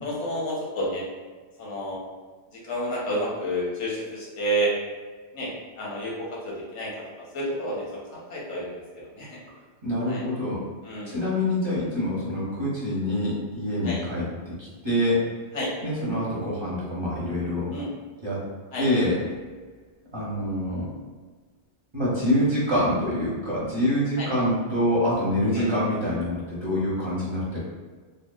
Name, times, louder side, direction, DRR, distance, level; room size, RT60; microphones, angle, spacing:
voice 1, 0.0-1.0 1.6-2.0 2.6-4.7 5.3-5.5 5.8-6.1 6.4-6.9 7.3-7.8 8.1-8.8 9.2-9.4 10.1-10.2 10.8-11.1 13.8-14.0 15.5-15.7 17.7-17.9 18.7-18.9 24.2-24.3 25.5-25.7, equal, 85° left, -4 dB, 1.1 m, -29 dB
voice 2, 9.8-10.6 11.1-14.5 14.8-15.2 15.8-17.7 18.2-18.4 18.8-19.2 20.1-20.8 21.9-27.6, left 1 dB, 30° right, -9 dB, 0.8 m, -25 dB
2.7 x 2.2 x 2.3 m, 1.4 s
omnidirectional pair, 1.2 m